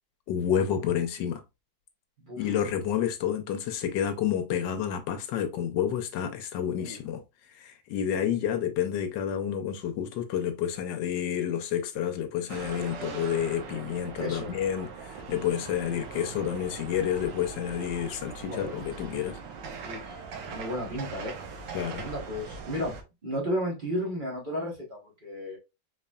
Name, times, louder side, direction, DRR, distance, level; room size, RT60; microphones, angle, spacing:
voice 1, 0.3-1.4 2.4-7.2 7.5-19.4 21.7-22.1, left 9 dB, 80° left, 1.3 m, -29 dB
sound 1, 12.5-23.0, right 5 dB, 75° right, 1.4 m, -41 dB
voice 2, 14.2-14.5 18.5-18.8 19.8-21.3 22.0-22.9 23.2-25.6, equal, 35° right, 1.0 m, -33 dB
4.2 x 3.2 x 2.3 m
omnidirectional pair, 2.0 m